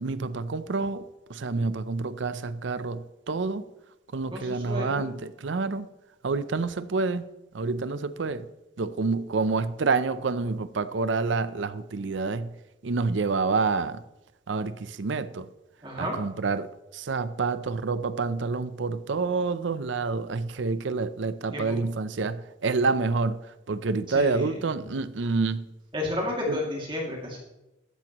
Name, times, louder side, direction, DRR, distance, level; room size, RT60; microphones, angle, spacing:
voice 1, 0.0-3.6 4.1-5.9 6.2-7.2 7.5-8.5 8.8-12.5 12.8-14.0 14.5-15.5 16.0-23.4 23.7-25.7 26.5-26.6, right 4 dB, 75° right, 13 dB, 0.6 m, -28 dB
voice 2, 4.3-5.1 15.8-16.2 21.5-21.8 24.1-24.6 25.9-27.4, left 1 dB, 25° right, -2 dB, 2.4 m, -32 dB
13.5 x 10.5 x 3.0 m, 0.96 s
head